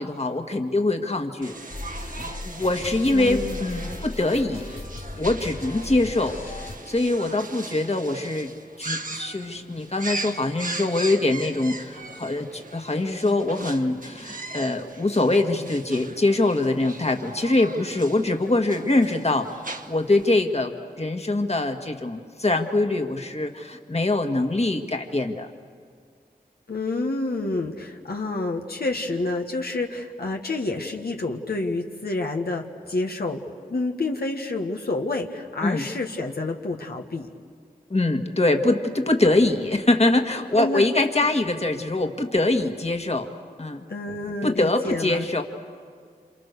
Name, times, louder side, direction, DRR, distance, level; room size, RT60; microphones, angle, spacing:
voice 1, 0.0-1.5 2.2-4.8 5.2-6.4 6.6-8.5 8.8-19.6 19.9-25.5 35.6-35.8 37.9-43.3 43.6-43.8 44.4-45.4, left 2 dB, 40° left, 4 dB, 1.9 m, -23 dB
sound 1, 1.4-20.2, right 3 dB, 60° right, 1.3 m, -39 dB
sound 2, 1.7-6.8, left 2 dB, 60° left, 3.9 m, -37 dB
voice 2, 3.1-3.6 26.7-33.4 33.7-37.3 40.6-40.9 41.2-41.3 43.9-45.2, left 2 dB, 80° left, 2 dB, 1.6 m, -28 dB
28.5 x 27.5 x 6.8 m, 2.1 s
wide cardioid pair, 60°, 16 cm